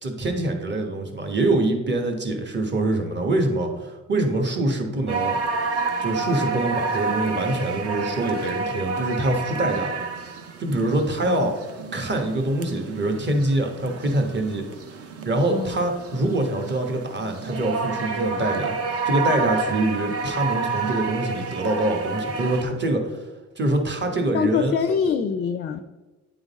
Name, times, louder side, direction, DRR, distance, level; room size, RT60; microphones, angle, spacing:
voice 1, 0.0-5.4 6.0-9.9 10.6-11.6 11.9-14.6 15.2-18.7 19.0-23.1 23.6-24.8, right 2 dB, 35° right, 4 dB, 1.2 m, -24 dB
sound 1, 5.1-22.6, right 4 dB, 50° right, 0.7 m, -29 dB
voice 2, 11.2-11.5 15.5-15.8 24.3-25.8, left 6 dB, 35° left, 10 dB, 0.4 m, -24 dB
9.1 x 3.8 x 4.1 m, 1.1 s
cardioid pair, 90°, 30 cm